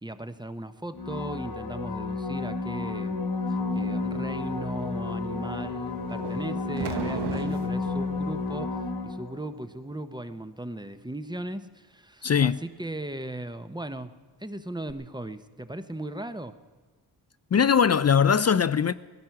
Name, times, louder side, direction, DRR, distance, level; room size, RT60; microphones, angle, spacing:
voice 1, 0.0-3.3 3.7-14.1 14.4-16.6, right 1 dB, 10° right, 0.8 m, -37 dB
sound 1, 0.9-9.6 14.9-15.0, left 3 dB, 60° left, 1.4 m, -31 dB
sound 2, 3.5-8.7, right 5 dB, 55° right, 0.8 m, -45 dB
sound 3, 6.2-8.0, right 7 dB, 80° right, 1.0 m, -36 dB
voice 2, 12.2-12.6 17.5-18.9, left 7 dB, 40° left, 0.4 m, -21 dB
17.5 x 13.5 x 5.8 m
cardioid pair, 70°, 40 cm